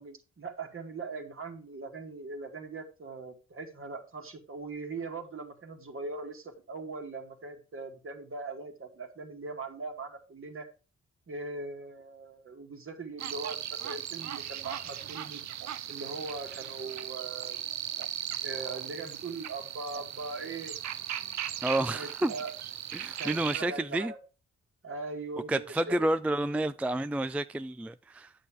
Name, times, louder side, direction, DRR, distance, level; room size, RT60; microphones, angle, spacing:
voice 1, 0.0-10.7 11.3-15.4 15.9-17.6 18.4-20.8 21.9-22.5 23.2-24.2 24.8-26.1, right 3 dB, 45° right, 2.1 m, -40 dB
sound 1, 13.2-23.6, right 11 dB, 70° right, 0.6 m, -38 dB
voice 2, 21.6-22.3 22.9-24.1 25.5-28.3, right 1 dB, 5° right, 0.3 m, -30 dB
8.6 x 7.4 x 3.6 m
supercardioid pair, 50°, 29 cm